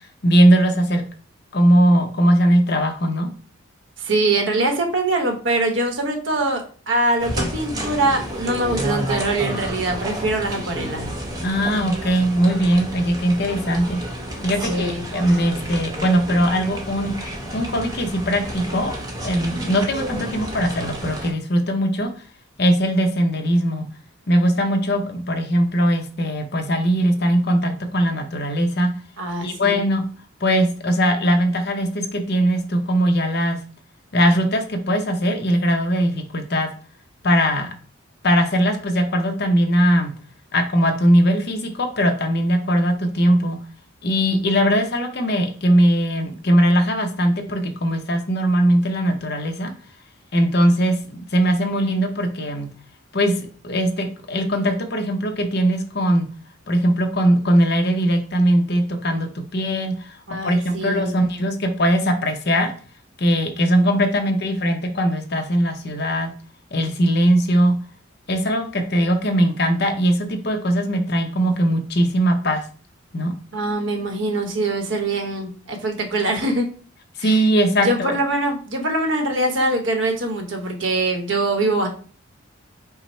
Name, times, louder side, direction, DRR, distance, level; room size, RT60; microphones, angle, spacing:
voice 1, 0.2-1.0 1.5-3.3 11.4-14.0 14.4-17.1 17.5-18.9 19.2-22.1 22.6-23.9 24.3-28.9 29.4-30.0 30.4-33.6 34.1-36.7 37.2-37.7 38.2-40.1 40.5-43.6 44.0-49.7 50.3-52.7 53.1-56.3 56.7-60.1 60.4-62.7 63.2-66.3 66.7-67.8 68.3-72.6 73.1-73.3 77.2-78.2, equal, 50° left, 5 dB, 0.7 m, -20 dB
voice 2, 4.0-11.1 14.7-15.0 29.2-29.8 60.3-61.2 73.5-76.7 77.2-77.4 77.7-81.9, right 2 dB, 65° right, 4 dB, 0.9 m, -23 dB
sound 1, 7.2-21.3, equal, 20° right, 0.8 m, -30 dB
5.6 x 2.0 x 4.3 m, 0.41 s
head